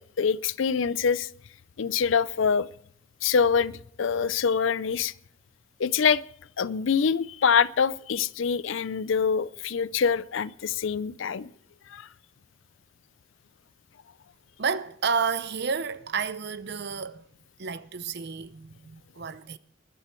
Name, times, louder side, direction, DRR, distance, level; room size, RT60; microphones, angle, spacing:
voice 1, 0.2-1.3 1.8-2.7 3.2-5.1 5.8-6.2 6.6-11.5 11.9-12.1, left 6 dB, 70° left, 0.5 m, -25 dB
voice 2, 14.6-17.2 17.6-19.6, right 5 dB, 55° right, 0.7 m, -30 dB
21.5 x 11.5 x 4.5 m
head